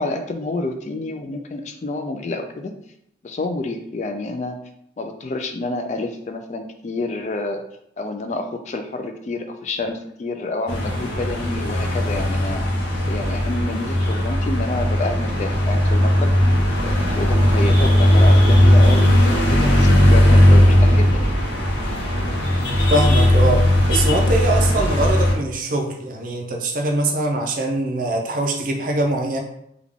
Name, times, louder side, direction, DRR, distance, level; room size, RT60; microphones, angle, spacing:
voice 1, 0.0-2.7 3.2-4.6 5.0-7.6 8.0-12.6 13.1-16.3 16.8-21.4, left 2 dB, 40° left, 5 dB, 0.3 m, -28 dB
sound 1, 10.7-25.3, left 1 dB, 70° left, 0.9 m, -17 dB
voice 2, 22.9-29.4, right 2 dB, 45° right, 2 dB, 0.5 m, -22 dB
3.5 x 2.3 x 3.5 m, 0.75 s
head